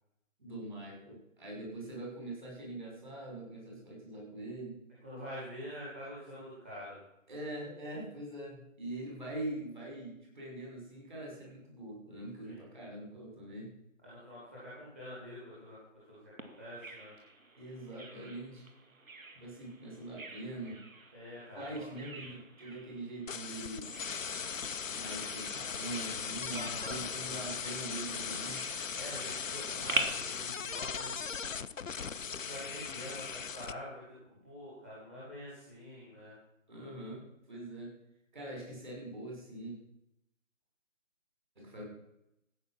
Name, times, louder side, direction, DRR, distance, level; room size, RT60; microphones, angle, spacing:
voice 1, 0.4-4.8 7.3-13.7 17.6-18.6 19.3-20.8 21.5-23.9 24.9-28.6 36.7-37.9 38.3-39.8 41.6-41.8, right 1 dB, 35° right, -2 dB, 6.2 m, -43 dB
voice 2, 5.0-7.0 12.4-12.6 14.0-17.1 21.1-22.3 26.5-27.5 28.9-31.5 32.2-36.4, equal, 10° right, -9 dB, 1.8 m, -46 dB
Bird vocalization bird call bird song, 16.4-30.0, right 3 dB, 80° right, 2.3 m, -44 dB
sound 1, 23.3-33.7, left 6 dB, 70° left, 0.8 m, -38 dB
14.5 x 9.6 x 5.9 m, 0.82 s
figure-of-eight pair, 175°, 40 cm